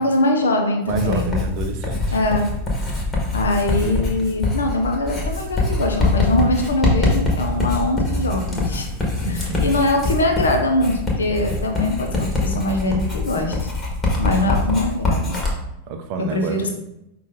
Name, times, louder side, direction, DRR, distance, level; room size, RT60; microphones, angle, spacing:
voice 1, 0.0-1.4 2.1-2.5 3.3-8.9 9.3-13.7 14.2-15.4 16.2-16.7, left 2 dB, 70° left, 4 dB, 0.6 m, -22 dB
Writing, 0.9-15.5, left 2 dB, 20° left, 1.2 m, -23 dB
voice 2, 0.9-2.2 9.0-9.7 15.9-16.6, right 4 dB, 45° right, 6 dB, 0.5 m, -29 dB
5.1 x 2.4 x 3.6 m, 0.86 s
figure-of-eight pair, 90°, 0 cm